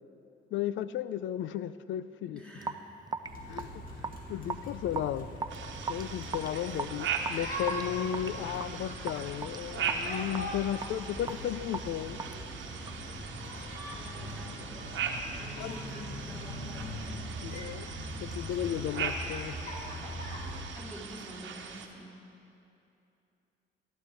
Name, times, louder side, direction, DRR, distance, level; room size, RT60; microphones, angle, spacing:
voice 1, 0.5-2.4 3.5-3.8 4.3-5.3 5.9-12.2 15.6-15.8 17.4-17.9 18.2-19.6, left 11 dB, 75° left, 15 dB, 0.5 m, -34 dB
voice 2, 2.3-2.8 13.8-14.8 15.3-17.1 20.7-22.2, equal, 5° left, -4 dB, 3.1 m, -48 dB
Raindrop / Drip, 2.6-13.1, right 4 dB, 20° right, 0.4 m, -40 dB
sound 1, 3.2-20.6, equal, 45° left, 2.6 m, -41 dB
sound 2, 5.5-21.9, right 6 dB, 70° right, 1.1 m, -40 dB
14.5 x 11.5 x 4.5 m, 2.8 s
cardioid pair, 90°, 20 cm